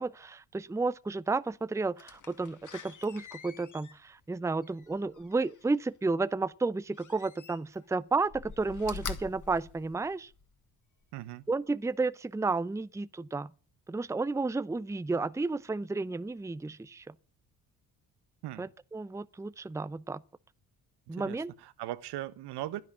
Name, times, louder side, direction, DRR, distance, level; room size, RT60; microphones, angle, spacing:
voice 1, 0.0-10.3 11.5-13.5 13.9-17.1 18.6-20.2 21.1-21.5, right 3 dB, 5° right, 0.6 m, -32 dB
Slam, 2.0-5.8 6.9-7.9 8.2-10.5 11.0-11.1, left 5 dB, 45° left, 2.2 m, -45 dB
voice 2, 11.1-11.4 18.4-18.7 21.1-22.8, right 15 dB, 70° right, 1.2 m, -39 dB
12.0 x 11.0 x 8.4 m
hypercardioid pair, 50°, 41 cm